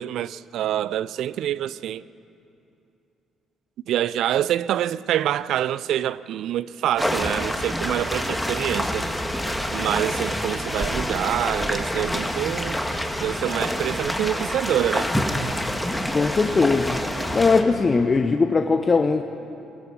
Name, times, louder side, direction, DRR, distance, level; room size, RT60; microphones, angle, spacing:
voice 1, 0.0-2.0 3.9-9.1 9.7-12.8 13.2-15.1, right 11 dB, 70° right, 0.5 m, -26 dB
sound 1, 7.0-17.6, equal, 5° left, 2.3 m, -27 dB
voice 2, 16.1-17.0 17.3-19.2, left 4 dB, 35° left, 1.1 m, -20 dB
22.0 x 21.5 x 5.6 m
hypercardioid pair, 50°, 0 cm